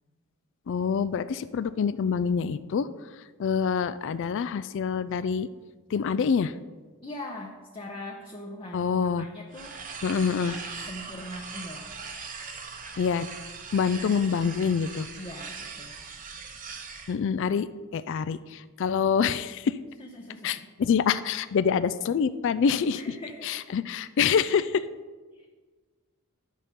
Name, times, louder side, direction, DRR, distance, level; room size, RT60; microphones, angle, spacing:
voice 1, 0.7-2.9 3.4-5.5 5.9-6.5 8.7-9.3 10.0-10.6 13.0-13.3 13.7-15.1 17.1-17.7 17.9-19.8 20.4-23.1 23.4-24.8, left 6 dB, 55° left, 15 dB, 0.3 m, -26 dB
voice 2, 7.0-8.9 9.2-9.8 10.3-11.9 15.1-16.0 20.0-20.7 23.0-23.6 25.3-25.5, left 1 dB, 25° left, 0 dB, 0.8 m, -41 dB
sound 1, 9.5-17.2, right 5 dB, 35° right, 0.9 m, -40 dB
11.0 x 6.5 x 5.2 m, 1.4 s
head